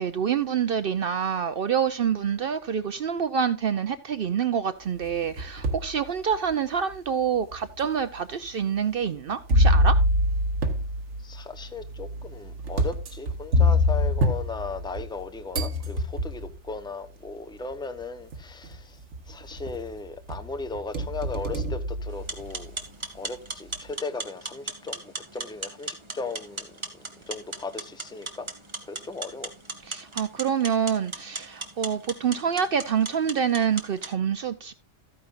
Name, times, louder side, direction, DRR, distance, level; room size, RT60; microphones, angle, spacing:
voice 1, 0.0-10.0 29.8-34.7, right 7 dB, 60° right, 0.8 m, -27 dB
sound 1, 5.0-5.9 6.5-6.6 7.5-7.6 9.5-15.2 15.5-16.5 17.7-17.8 18.3-18.7 19.1-19.9 20.3-22.7, left 1 dB, 85° right, 1.6 m, -25 dB
voice 2, 11.2-19.0 19.3-22.7 23.1-26.7 27.3-28.5 28.9-29.5, left 3 dB, 5° left, 0.7 m, -37 dB
sound 2, 22.1-34.1, right 2 dB, 25° right, 1.5 m, -38 dB
14.0 x 9.6 x 2.5 m
omnidirectional pair, 1.2 m